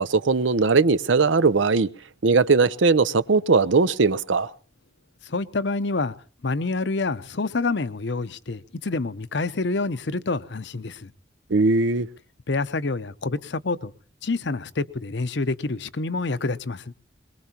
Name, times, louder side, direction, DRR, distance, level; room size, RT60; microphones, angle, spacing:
voice 1, 0.0-1.9 2.2-4.5 11.5-12.1, right 4 dB, 85° right, 0.7 m, -19 dB
voice 2, 5.3-6.1 6.4-11.1 12.5-13.9 14.2-16.8, left 3 dB, 65° left, 0.8 m, -27 dB
22.5 x 21.5 x 2.9 m
head